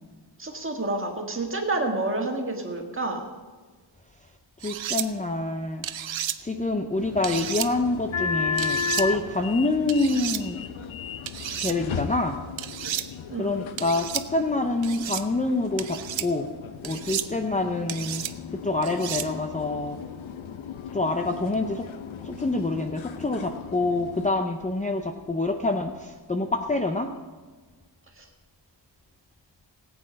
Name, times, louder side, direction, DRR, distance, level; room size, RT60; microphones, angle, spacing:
voice 1, 0.4-3.2 13.3-13.7 17.6-17.8 28.2-28.3, right 2 dB, 25° right, 3 dB, 1.8 m, -29 dB
voice 2, 4.6-5.8 6.4-10.7 11.6-12.4 13.4-16.5 16.8-18.2 18.5-20.0 20.9-21.9 22.2-27.1, left 2 dB, 15° left, 5 dB, 0.6 m, -26 dB
sound 1, 4.6-5.1 5.8-6.4 7.2-7.7 8.6-9.1 9.9-10.4 11.3-11.7 12.6-13.0 13.8-14.2 14.8-15.2 15.8-16.3 16.8-17.3 17.9-18.3 18.8-19.3, right 10 dB, 80° right, 0.7 m, -32 dB
sound 2, 7.0-24.3, left 6 dB, 90° left, 0.8 m, -35 dB
17.5 x 8.7 x 5.1 m, 1.4 s
wide cardioid pair, 170°, 46 cm